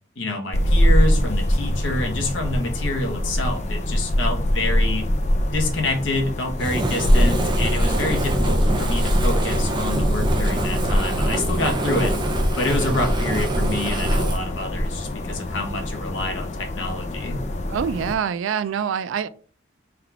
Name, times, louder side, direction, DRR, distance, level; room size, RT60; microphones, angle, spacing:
voice 1, 0.2-5.1 5.5-12.1 12.5-17.4, left 2 dB, 70° left, 1.0 m, -27 dB
sound 1, 0.5-18.2, equal, 35° left, 0.4 m, -23 dB
Fire, 6.6-14.4, right 1 dB, 25° right, 0.5 m, -26 dB
voice 2, 17.7-19.3, right 7 dB, 85° right, 0.3 m, -25 dB
3.6 x 2.4 x 4.5 m
head